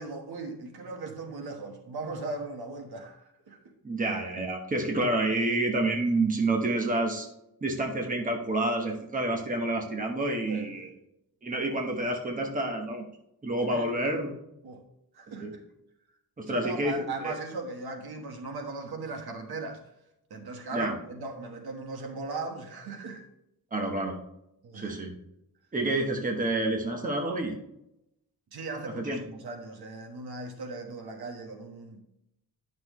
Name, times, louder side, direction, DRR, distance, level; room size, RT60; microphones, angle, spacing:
voice 1, 0.0-3.6 10.4-10.9 13.7-14.1 14.6-14.8 15.1-15.6 16.5-19.8 20.3-23.2 24.6-25.0 28.5-32.0, right 3 dB, 80° right, 4 dB, 1.4 m, -38 dB
voice 2, 3.8-7.3 7.6-10.9 11.4-13.0 13.4-14.3 15.4-15.5 16.4-17.3 20.7-20.9 23.7-24.1 24.7-25.1 25.7-27.6 28.8-29.2, right 2 dB, 20° right, 2 dB, 1.1 m, -28 dB
10.5 x 6.1 x 3.1 m, 0.83 s
wide cardioid pair, 150°, 37 cm